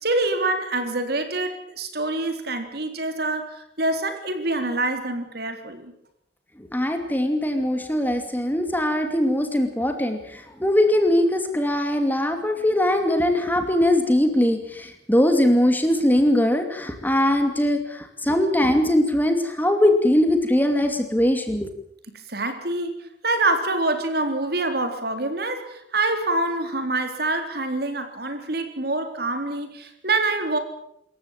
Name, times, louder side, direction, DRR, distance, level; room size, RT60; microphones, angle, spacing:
voice 1, 0.0-5.9 22.1-30.6, right 2 dB, 60° right, 7 dB, 3.8 m, -26 dB
voice 2, 6.6-21.7, left 1 dB, 10° left, 6 dB, 2.6 m, -21 dB
26.5 x 14.5 x 9.0 m, 0.75 s
head